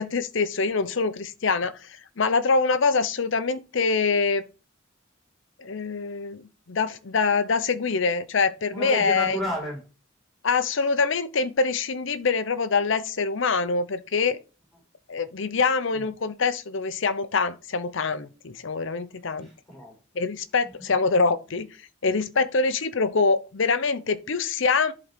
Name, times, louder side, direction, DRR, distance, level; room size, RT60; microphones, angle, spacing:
voice 1, 0.0-4.4 5.6-6.4 6.7-9.4 10.4-14.4 15.1-19.5 20.2-21.7 22.0-24.9, left 4 dB, 60° left, 0.7 m, -24 dB
voice 2, 8.7-9.8 15.9-16.0 19.4-20.3 20.6-20.9, equal, ahead, 5.4 m, -33 dB
11.0 x 3.9 x 5.1 m
head